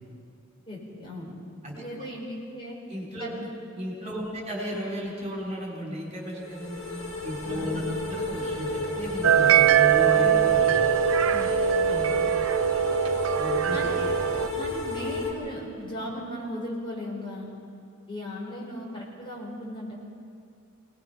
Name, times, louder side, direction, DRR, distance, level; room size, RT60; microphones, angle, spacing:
voice 1, 0.7-1.3 1.7-2.8 3.2-3.3 4.1-4.3 7.4-8.0 11.3-12.2 13.7-14.1 14.5-17.5 18.1-19.9, left 1 dB, 25° left, -4 dB, 5.1 m, -37 dB
voice 2, 2.9-3.5 3.8-6.8 7.2-10.8 13.3-13.9, equal, 35° right, -3 dB, 4.2 m, -34 dB
sound 1, 6.3-15.3, left 3 dB, 80° left, 5.5 m, -31 dB
sound 2, 9.2-14.5, right 11 dB, 85° right, 0.6 m, -22 dB
25.5 x 19.5 x 5.7 m, 2.4 s
head